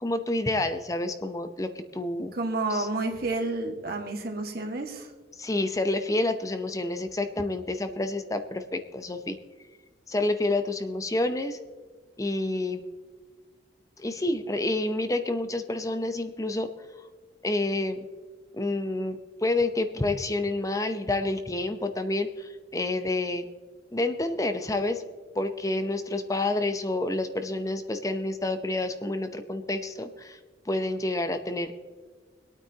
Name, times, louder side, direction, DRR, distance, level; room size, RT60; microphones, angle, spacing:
voice 1, 0.0-2.3 2.7-2.9 5.4-9.4 10.1-11.6 12.2-12.8 14.0-16.7 17.4-18.1 18.5-23.5 23.9-25.0 25.3-30.4 30.7-31.7, left 2 dB, 20° left, 8 dB, 0.7 m, -28 dB
voice 2, 2.3-5.1, right 2 dB, 55° right, 2 dB, 1.7 m, -30 dB
25.0 x 9.1 x 2.9 m, 1.5 s
head